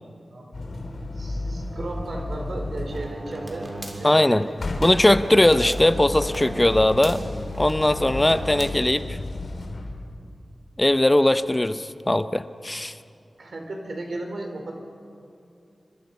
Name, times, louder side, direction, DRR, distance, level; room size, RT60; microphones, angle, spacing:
voice 1, 0.3-0.8 1.1-3.7 4.0-4.7 13.4-14.7, right 2 dB, 75° right, 2 dB, 4.4 m, -35 dB
sound 1, 0.5-3.2 4.6-10.2 13.0-13.1, left 2 dB, 75° left, 3.2 m, -33 dB
sound 2, 2.9-8.7, right 1 dB, 35° right, 3.5 m, -37 dB
voice 2, 4.0-4.5 4.8-7.2 7.6-9.2 10.8-12.9, left 1 dB, 20° left, 12 dB, 0.8 m, -20 dB
27.5 x 25.0 x 5.5 m, 2.5 s
wide cardioid pair, 60°, 0 cm